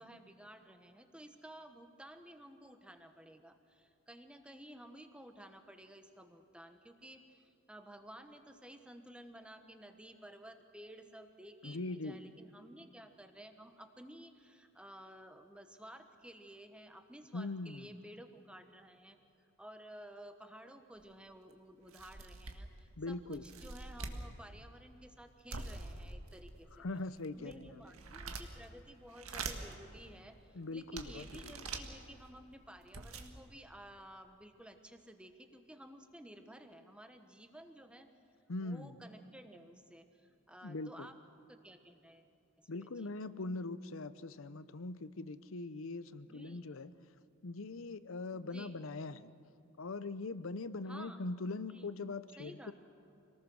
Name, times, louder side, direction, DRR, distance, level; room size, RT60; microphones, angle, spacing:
voice 1, 0.0-19.2 19.6-26.8 27.3-38.1 38.6-41.2 41.5-42.3 42.6-43.1 46.2-46.7 48.4-48.8 50.9-51.2 51.7-51.9 52.4-52.7, right 1 dB, 5° right, 7 dB, 1.2 m, -54 dB
voice 2, 11.6-12.2 17.3-17.9 23.0-23.5 26.7-27.8 30.5-31.5 38.5-39.0 40.6-41.1 42.7-46.9 47.4-49.3 49.8-52.7, left 3 dB, 65° left, 15 dB, 0.7 m, -41 dB
sound 1, 21.0-21.1 21.5-21.6 21.9-22.8 23.3-24.2 25.5-26.6 27.2-28.7 29.1-29.8 30.4-30.5 31.0-31.9 32.5-32.6 32.8-33.3, right 4 dB, 85° right, 1.7 m, -44 dB
26.0 x 19.0 x 6.4 m, 2.7 s
head